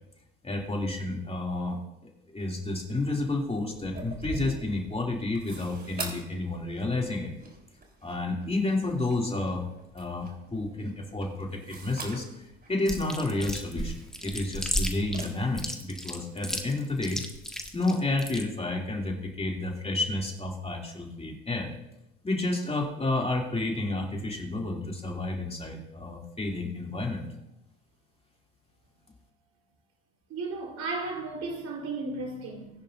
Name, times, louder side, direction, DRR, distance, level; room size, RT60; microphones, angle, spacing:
voice 1, 0.4-1.8 2.0-7.3 8.0-9.7 9.9-17.2 17.7-21.7 22.2-27.2, left 2 dB, 20° left, 2.9 m, -30 dB
sound 1, 3.7-15.2, right 2 dB, 30° right, 4.0 m, -45 dB
Chewing mastication, 12.9-18.4, equal, ahead, 1.8 m, -33 dB
voice 2, 30.3-32.7, right 3 dB, 55° right, 4.3 m, -34 dB
20.5 x 10.5 x 2.7 m
hypercardioid pair, 65°, 30 cm